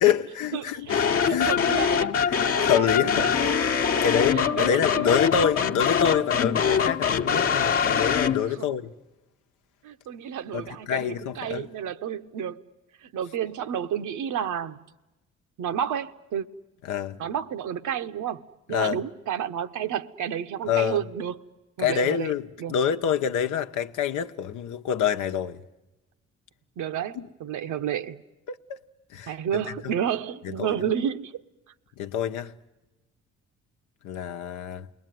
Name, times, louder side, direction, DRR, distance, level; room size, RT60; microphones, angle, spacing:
voice 1, 0.0-1.5 2.3-8.9 10.5-11.7 16.8-17.2 18.7-19.0 20.7-21.0 21.8-25.6 27.2-27.3 28.5-28.8 29.1-29.9 30.4-30.8 32.0-32.5 34.0-34.9, left 8 dB, 85° left, 1.0 m, -27 dB
voice 2, 0.5-2.1 3.0-3.3 4.0-4.8 8.6-8.7 9.8-12.6 13.0-14.8 15.6-16.5 17.2-21.4 21.8-22.3 22.6-22.7 26.8-28.2 29.3-31.4, right 9 dB, 75° right, 0.9 m, -31 dB
sound 1, 0.9-8.5, left 7 dB, 50° left, 1.0 m, -23 dB
29.0 x 21.0 x 9.3 m
cardioid pair, 90°, 30 cm